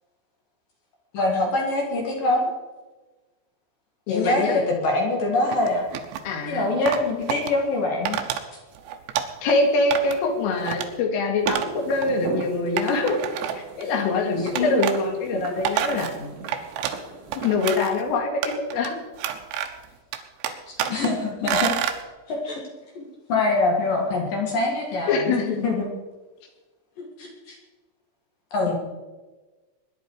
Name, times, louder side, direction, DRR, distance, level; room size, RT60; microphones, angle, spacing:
voice 1, 1.1-2.5 4.1-5.8 6.5-8.2 14.5-14.7 20.5-21.7 22.3-22.6 23.0-25.2 25.6-25.9 27.0-27.6 28.5-28.7, left 2 dB, 55° left, 0 dB, 3.0 m, -24 dB
voice 2, 4.1-4.7 6.2-6.7 9.4-13.2 13.5-16.4 17.4-19.0 25.1-25.7 28.7-28.8, left 3 dB, 85° left, 2 dB, 4.6 m, -24 dB
sound 1, 5.5-6.3 6.9-7.5 8.1-8.4 8.8-9.6 9.9-10.3 10.6-10.9 11.5-11.7 12.0-12.1 12.8-13.8 14.6-15.0 15.4-17.0 17.3-18.0 18.4-18.9 19.2-19.9 20.1-21.1 21.5-22.0, right 10 dB, 80° right, 3.4 m, -28 dB
Walk footsteps, 11.5-17.5, right 5 dB, 60° right, 3.9 m, -38 dB
22.0 x 10.5 x 4.7 m, 1.2 s
omnidirectional pair, 5.7 m